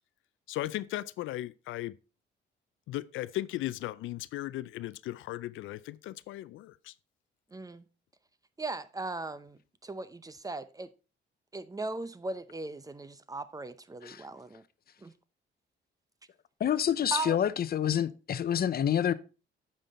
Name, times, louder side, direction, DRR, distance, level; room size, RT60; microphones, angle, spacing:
voice 1, 0.5-1.9 2.9-6.9, left 15 dB, 80° left, 0.4 m, -37 dB
voice 2, 7.5-7.9 8.6-10.9 11.5-14.6 15.0-15.1 17.1-17.4, right 3 dB, 20° right, 0.6 m, -38 dB
voice 3, 16.6-19.1, left 9 dB, 50° left, 0.7 m, -28 dB
9.0 x 5.5 x 4.1 m
cardioid pair, 90°, 20 cm